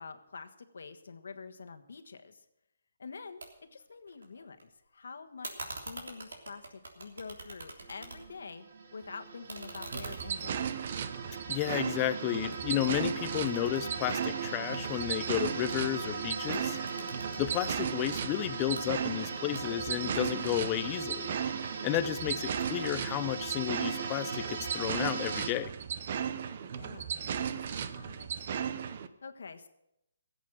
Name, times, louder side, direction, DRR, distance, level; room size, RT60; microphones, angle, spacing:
voice 1, 0.0-2.5 3.0-3.4 3.7-8.6 8.9-10.6 21.8-22.2 26.7-28.5 29.2-29.7, left 5 dB, 75° left, 8 dB, 1.5 m, -47 dB
sound 1, 3.4-3.5 3.8-4.6 5.4-8.5 8.8-12.1 12.5-14.7 16.4-17.6 18.5-18.9 19.5-20.0, right 2 dB, 90° right, 3.3 m, -46 dB
sound 2, 7.8-25.5, right 5 dB, 55° right, 2.0 m, -40 dB
sound 3, 9.9-29.1, right 8 dB, 40° right, 0.8 m, -36 dB
voice 2, 11.5-16.8 17.4-21.3 21.8-25.7, left 13 dB, 20° left, 14 dB, 0.5 m, -32 dB
16.0 x 8.1 x 7.7 m, 0.82 s
hypercardioid pair, 165°, 0 cm